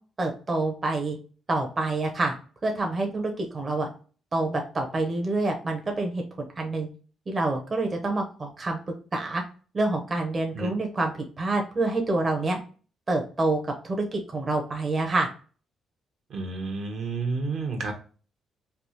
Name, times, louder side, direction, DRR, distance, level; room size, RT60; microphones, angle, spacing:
voice 1, 0.2-1.2 1.5-2.3 2.6-3.9 4.3-6.2 6.6-6.9 7.3-8.8 9.1-9.4 9.7-11.1 11.4-12.6 13.1-15.3, right 2 dB, 35° right, 1 dB, 0.7 m, -27 dB
voice 2, 16.3-17.9, right 3 dB, 65° right, 3 dB, 0.9 m, -30 dB
3.4 x 2.4 x 2.8 m, 0.38 s
cardioid pair, 90°, 0 cm